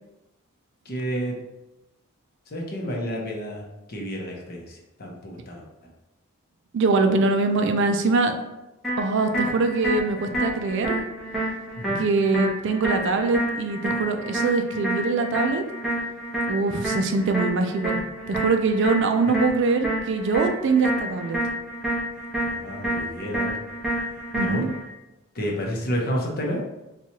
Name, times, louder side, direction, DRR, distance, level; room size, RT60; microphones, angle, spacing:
voice 1, 0.9-1.3 2.5-5.6 11.7-12.0 22.4-23.6 24.4-24.6 25.3-26.6, equal, 45° left, -1 dB, 0.7 m, -30 dB
voice 2, 6.7-8.4 9.0-11.0 12.0-15.6 16.5-18.0 18.3-21.4 24.3-24.7, right 3 dB, 55° right, 6 dB, 0.3 m, -23 dB
sound 1, 8.8-24.8, right 1 dB, ahead, 0.9 m, -29 dB
4.2 x 2.3 x 2.9 m, 0.97 s
head